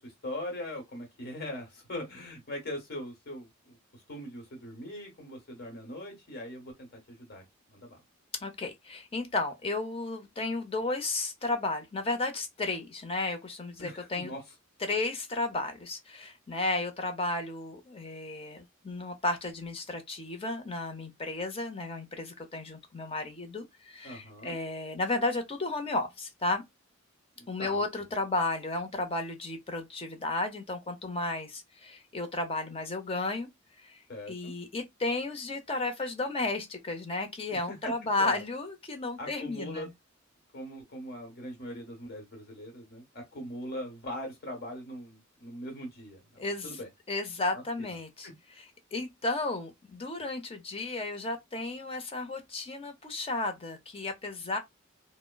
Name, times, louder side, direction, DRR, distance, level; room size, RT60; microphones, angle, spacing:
voice 1, 0.0-3.8 4.1-8.0 13.8-14.4 24.0-24.5 27.4-27.8 34.1-34.5 37.5-37.9 38.2-38.4 39.2-39.9 40.5-46.9 47.8-47.9 48.2-48.3, left 1 dB, 50° left, 1.2 m, -41 dB
voice 2, 8.4-14.3 14.8-26.6 27.5-33.5 33.8-34.0 34.3-39.9 46.4-46.7 47.1-48.3 48.9-54.6, left 2 dB, 30° left, 0.6 m, -33 dB
3.5 x 2.0 x 2.2 m
head